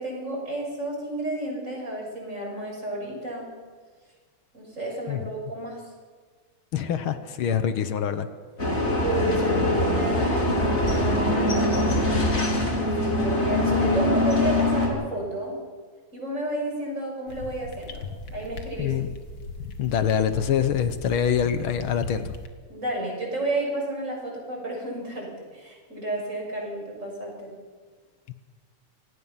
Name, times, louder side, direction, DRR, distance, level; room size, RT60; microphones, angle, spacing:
voice 1, 0.0-3.5 4.5-5.8 8.8-12.1 13.0-15.6 16.1-19.0 22.7-27.5, right 1 dB, 25° right, -1 dB, 6.9 m, -31 dB
voice 2, 6.7-8.3 18.8-19.1 19.8-22.3 28.3-28.4, left 8 dB, 60° left, 10 dB, 1.4 m, -25 dB
sound 1, 8.6-14.9, left 1 dB, 20° left, 3.4 m, -23 dB
sound 2, 17.3-22.5, left 2 dB, 45° left, 1.8 m, -37 dB
27.0 x 18.0 x 5.8 m, 1.5 s
omnidirectional pair, 3.3 m